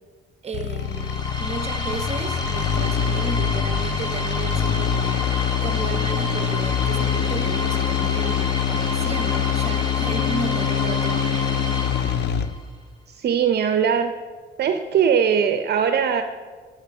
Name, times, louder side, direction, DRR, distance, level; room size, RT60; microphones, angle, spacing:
voice 1, 0.4-11.3, right 4 dB, 30° right, 1.0 m, -34 dB
sound 1, 0.5-12.6, left 9 dB, 60° left, 0.5 m, -24 dB
sound 2, 0.8-12.6, left 1 dB, 20° left, 1.7 m, -31 dB
voice 2, 13.1-14.1 14.6-16.2, right 7 dB, 55° right, 0.6 m, -20 dB
7.5 x 6.6 x 7.0 m
cardioid pair, 90°, 20 cm